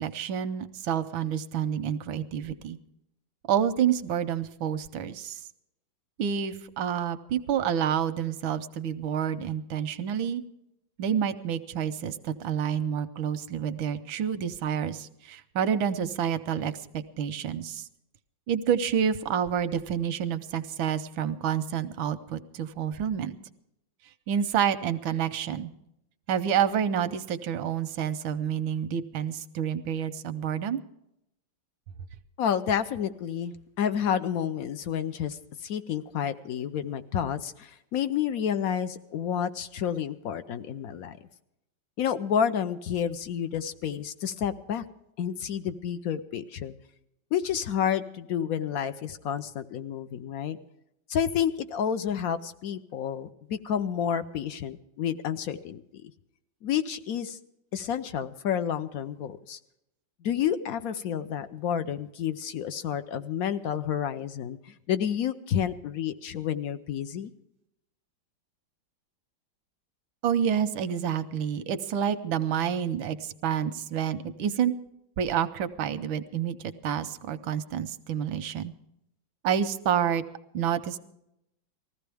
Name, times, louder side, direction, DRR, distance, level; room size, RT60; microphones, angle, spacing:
voice 1, 0.0-2.8 3.5-5.4 6.2-10.4 11.0-17.9 18.5-23.4 24.3-25.7 26.3-30.8 70.2-74.7 75.2-78.7 79.4-80.2 80.5-81.0, right 8 dB, 85° right, 11 dB, 1.6 m, -28 dB
voice 2, 32.4-41.2 42.0-44.8 45.2-46.7 47.3-50.6 51.1-56.1 56.6-57.4 57.7-59.6 60.2-67.3, left 8 dB, 65° left, 11 dB, 0.9 m, -30 dB
20.0 x 15.0 x 3.4 m, 0.82 s
omnidirectional pair, 2.1 m